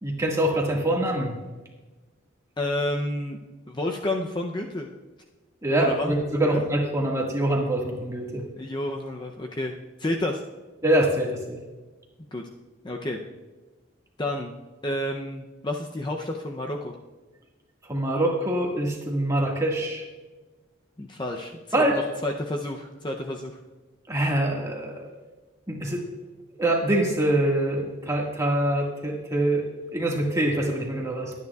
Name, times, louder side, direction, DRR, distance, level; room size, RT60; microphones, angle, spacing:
voice 1, 0.0-1.4 5.6-8.4 10.8-11.6 17.8-20.0 21.7-22.0 24.1-25.1 25.7-26.0 26.6-29.6 29.9-31.3, right 1 dB, 15° right, -1 dB, 1.7 m, -24 dB
voice 2, 2.6-3.4 3.7-4.9 5.8-6.1 6.4-6.6 8.6-10.4 12.3-12.4 12.8-13.2 14.2-14.5 14.8-17.0 21.0-23.6, left 1 dB, 20° left, 1 dB, 0.6 m, -30 dB
22.0 x 9.4 x 2.4 m, 1.2 s
head